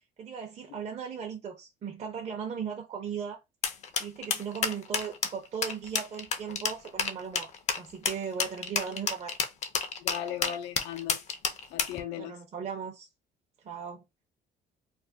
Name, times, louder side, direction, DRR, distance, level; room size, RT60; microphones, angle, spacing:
voice 1, 0.2-3.4 4.0-7.5 7.8-9.4 12.2-13.1 13.6-14.0, right 7 dB, 40° right, 0.7 m, -37 dB
sound 1, 3.6-12.0, left 6 dB, 40° left, 0.5 m, -30 dB
voice 2, 10.0-11.2 11.7-12.4, left 10 dB, 90° left, 0.6 m, -37 dB
2.5 x 2.1 x 3.4 m
cardioid pair, 110°, 17 cm